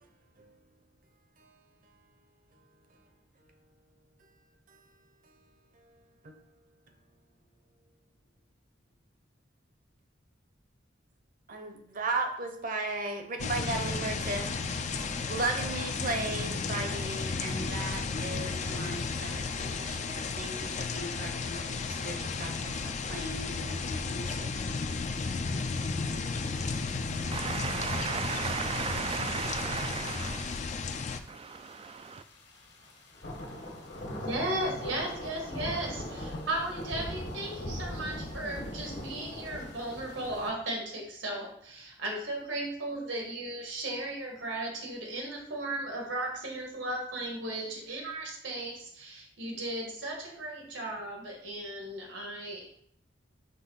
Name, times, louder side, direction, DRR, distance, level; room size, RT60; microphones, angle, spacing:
voice 1, 11.5-14.5 14.9-24.5, right 2 dB, 45° right, 0.8 m, -36 dB
sound 1, 13.4-31.2, left 4 dB, 40° left, 0.4 m, -33 dB
sound 2, 26.4-40.5, left 1 dB, 65° left, 1.5 m, -42 dB
voice 2, 27.3-30.0 31.3-32.2, right 6 dB, 30° right, 0.3 m, -35 dB
voice 3, 34.2-52.7, right 1 dB, 85° right, 1.8 m, -36 dB
5.4 x 3.2 x 5.7 m
head